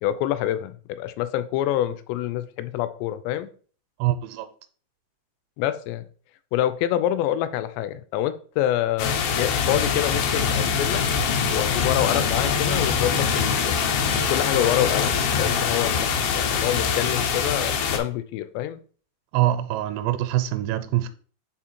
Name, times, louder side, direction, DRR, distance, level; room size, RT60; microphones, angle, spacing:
voice 1, 0.0-3.5 5.6-6.0 6.5-11.0 11.5-13.7 14.3-18.8, left 12 dB, 90° left, 2.7 m, -26 dB
voice 2, 4.0-4.5 19.3-21.1, right 13 dB, 90° right, 2.8 m, -24 dB
sound 1, 9.0-18.0, left 6 dB, 75° left, 2.4 m, -23 dB
6.2 x 3.7 x 4.4 m
omnidirectional pair, 4.9 m